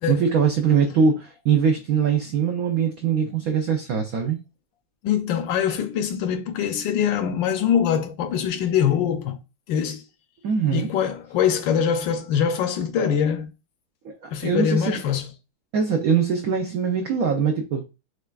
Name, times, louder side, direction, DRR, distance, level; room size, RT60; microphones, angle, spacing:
voice 1, 0.1-4.4 10.4-10.9 14.0-15.0 15.7-17.8, right 6 dB, 80° right, 0.7 m, -22 dB
voice 2, 5.0-9.4 9.7-10.0 10.7-13.5 14.3-15.3, left 8 dB, 75° left, 1.2 m, -23 dB
6.5 x 2.4 x 2.3 m
omnidirectional pair, 2.2 m